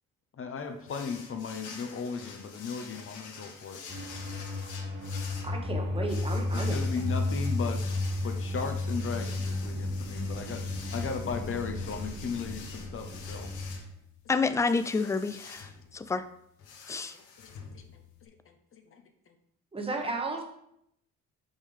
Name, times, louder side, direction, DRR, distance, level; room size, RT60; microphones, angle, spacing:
voice 1, 0.4-3.8 6.5-7.8 8.2-10.6 10.9-13.5 17.1-17.5 18.5-19.0, left 5 dB, 45° left, 6 dB, 0.7 m, -36 dB
sound 1, 0.9-18.3, left 5 dB, 80° left, 1.1 m, -48 dB
sound 2, 3.9-13.8, left 2 dB, 40° right, 1.7 m, -33 dB
voice 2, 5.4-6.8 19.7-20.4, right 3 dB, 20° right, 2 dB, 1.1 m, -33 dB
voice 3, 14.3-15.7 15.9-16.2 16.9-17.1, left 4 dB, 10° left, 12 dB, 0.3 m, -28 dB
5.4 x 5.4 x 3.3 m, 0.73 s
cardioid pair, 90°, 30 cm